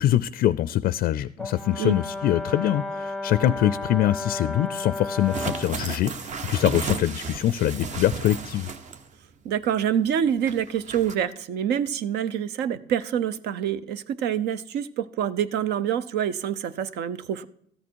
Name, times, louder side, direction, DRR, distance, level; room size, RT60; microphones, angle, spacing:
voice 1, 0.0-8.7, left 13 dB, 60° left, 17 dB, 0.4 m, -24 dB
Brass instrument, 1.4-5.8, left 2 dB, 5° left, 0.5 m, -33 dB
sound 1, 5.1-9.1 9.5-9.6 10.4-11.1, right 5 dB, 45° right, 0.8 m, -34 dB
voice 2, 9.4-17.4, right 9 dB, 75° right, 14 dB, 0.7 m, -26 dB
13.5 x 8.5 x 4.6 m, 0.71 s
cardioid pair, 110°, 17 cm